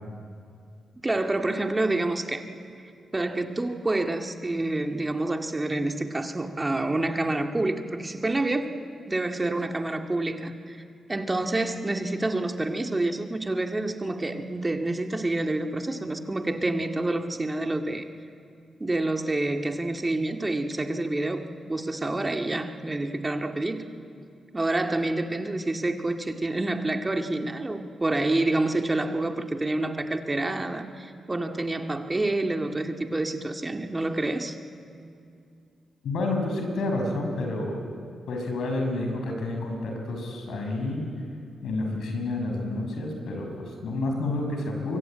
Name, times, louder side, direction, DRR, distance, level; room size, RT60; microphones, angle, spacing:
voice 1, 1.0-2.5 3.1-8.8 9.1-10.8 11.1-18.0 18.8-21.4 21.7-23.9 24.5-34.6, right 2 dB, 25° right, 5 dB, 2.0 m, -28 dB
voice 2, 36.0-37.8 38.3-41.0 41.6-45.0, left 2 dB, 75° left, 3 dB, 5.8 m, -29 dB
24.0 x 23.0 x 9.0 m, 2.4 s
supercardioid pair, 50°, 0 cm